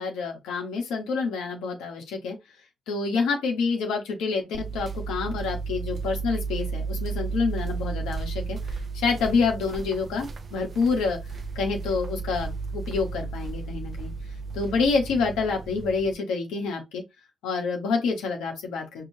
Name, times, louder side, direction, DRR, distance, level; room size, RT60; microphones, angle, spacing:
voice 1, 0.0-2.4 2.9-11.2 11.5-14.1 14.5-17.0 17.4-19.1, left 4 dB, 90° left, 1.1 m, -27 dB
sound 1, 4.5-16.1, right 4 dB, 40° right, 0.6 m, -33 dB
4.8 x 2.3 x 2.7 m
cardioid pair, 90°, 0 cm